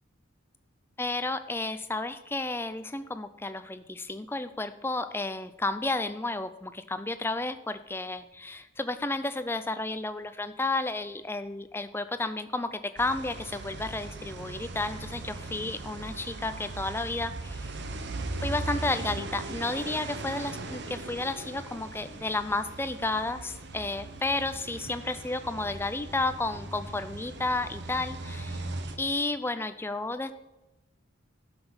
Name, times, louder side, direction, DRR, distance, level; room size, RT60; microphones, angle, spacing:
voice 1, 1.0-17.8 18.4-28.6 29.0-30.3, left 2 dB, 10° left, 11 dB, 0.4 m, -32 dB
sound 1, 13.0-29.0, right 2 dB, 50° right, 0.9 m, -39 dB
12.0 x 6.0 x 7.0 m, 1.0 s
head